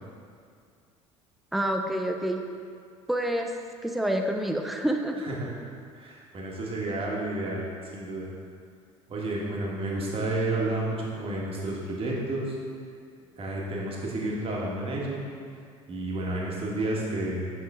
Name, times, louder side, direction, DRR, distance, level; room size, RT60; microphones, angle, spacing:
voice 1, 1.5-2.4 3.1-3.5 3.8-5.2, right 1 dB, ahead, 3 dB, 0.6 m, -27 dB
voice 2, 5.2-5.5 5.9-7.7 7.9-8.3 9.1-12.6 13.4-15.2 15.9-17.5, right 2 dB, 35° right, -3 dB, 1.6 m, -31 dB
8.0 x 5.4 x 3.7 m, 2.2 s
figure-of-eight pair, 60°, 17 cm